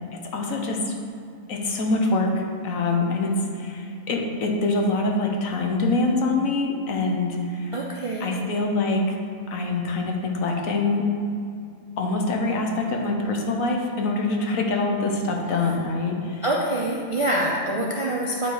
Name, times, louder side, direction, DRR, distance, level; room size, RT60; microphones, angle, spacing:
voice 1, 0.3-1.0 1.5-7.7 8.2-9.2 9.5-11.1 12.0-16.4, left 2 dB, 75° left, 1 dB, 1.3 m, -24 dB
voice 2, 7.7-8.3 16.4-18.5, right 1 dB, 45° right, -4 dB, 0.4 m, -25 dB
9.3 x 3.2 x 4.6 m, 2.4 s
omnidirectional pair, 1.4 m